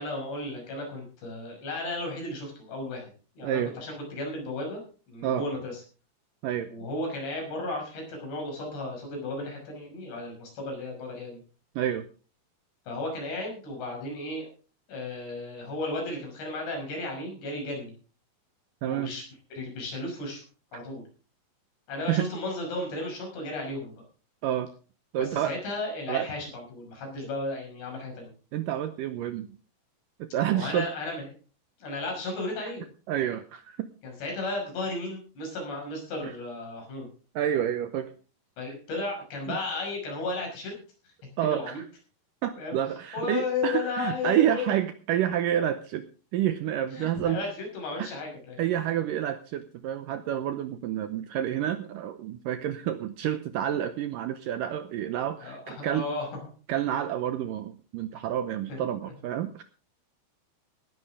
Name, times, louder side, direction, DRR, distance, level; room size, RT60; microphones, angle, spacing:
voice 1, 0.0-4.8 5.1-5.8 6.7-11.4 12.9-14.5 14.9-17.9 18.8-19.2 19.5-20.4 20.7-21.0 21.9-23.9 25.2-28.3 30.5-31.3 31.8-32.8 34.0-37.1 38.6-40.7 41.4-41.8 42.6-42.8 43.1-44.7 46.9-48.6 55.4-56.3 58.7-59.1, left 2 dB, 85° left, 1 dB, 8.0 m, -34 dB
voice 2, 3.4-3.7 5.2-5.4 6.4-6.7 11.8-12.1 18.8-19.1 22.1-22.3 24.4-24.7 25.1-25.6 26.1-26.3 28.5-29.5 30.2-30.9 33.1-33.9 36.2-36.3 37.4-38.1 38.7-38.8 39.5-39.6 41.4-41.9 42.4-46.1 46.3-47.4 48.0-48.1 48.6-56.1 56.7-59.6, right 11 dB, 85° right, 10 dB, 1.9 m, -29 dB
18.5 x 11.0 x 3.6 m, 0.37 s
omnidirectional pair, 4.8 m